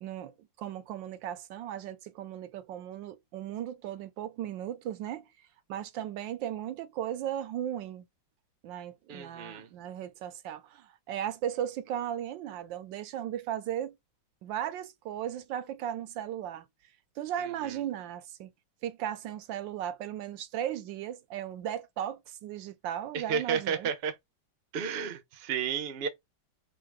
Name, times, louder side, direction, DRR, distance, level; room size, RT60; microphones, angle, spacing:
voice 1, 0.0-5.3 5.7-8.0 8.6-14.0 14.4-16.7 17.2-18.5 18.8-23.9, right 10 dB, 75° right, 1.2 m, -36 dB
voice 2, 9.1-9.7 23.1-24.2 24.7-26.1, right 7 dB, 50° right, 0.7 m, -32 dB
3.7 x 2.8 x 4.8 m
omnidirectional pair, 2.2 m